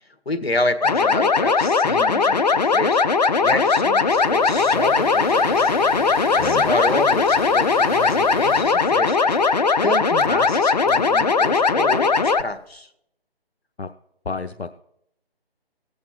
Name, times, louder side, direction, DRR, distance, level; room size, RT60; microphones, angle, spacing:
voice 1, 0.2-5.8 6.3-12.9, left 2 dB, 70° left, 9 dB, 1.6 m, -29 dB
sound 1, 0.8-12.4, left 4 dB, 40° left, 0.6 m, -19 dB
Engine / Mechanisms, 4.0-12.4, equal, 10° left, 3.9 m, -37 dB
voice 2, 6.3-6.7 13.8-13.9 14.3-14.8, left 3 dB, 90° left, 6 dB, 0.8 m, -30 dB
16.5 x 8.4 x 4.7 m, 0.75 s
figure-of-eight pair, 150°, 31 cm